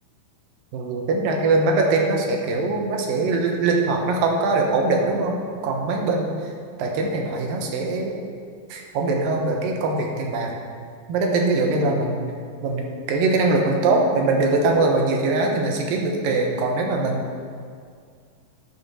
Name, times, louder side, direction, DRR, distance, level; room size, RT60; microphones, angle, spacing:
voice 1, 0.7-5.4 5.6-6.3 6.8-8.2 8.7-10.5 11.1-12.2 12.6-17.3, right 3 dB, 70° right, 1 dB, 2.6 m, -22 dB
10.5 x 7.0 x 6.2 m, 2.1 s
omnidirectional pair, 4.5 m